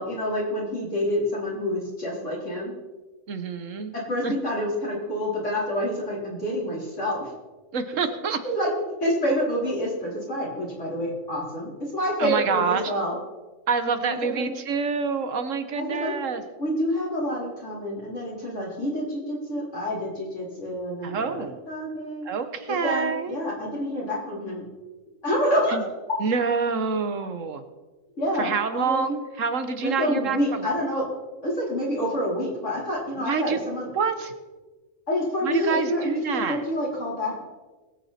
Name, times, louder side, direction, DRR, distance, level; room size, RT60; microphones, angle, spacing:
voice 1, 0.0-2.7 4.1-7.3 8.4-8.7 9.0-13.1 14.0-14.5 15.7-16.1 16.6-22.3 22.7-24.6 25.2-25.8 28.2-29.0 29.8-31.1 31.4-33.9 35.1-37.4, equal, 65° left, -4 dB, 4.7 m, -28 dB
voice 2, 3.3-3.9 4.2-4.3 7.7-8.4 12.2-12.9 13.7-16.4 21.0-21.6 22.2-23.4 25.7-25.8 26.2-27.6 28.4-30.7 33.2-33.6 33.9-34.3 35.4-36.6, right 5 dB, 70° right, 9 dB, 1.4 m, -27 dB
20.5 x 8.8 x 4.3 m, 1.2 s
omnidirectional pair, 1.4 m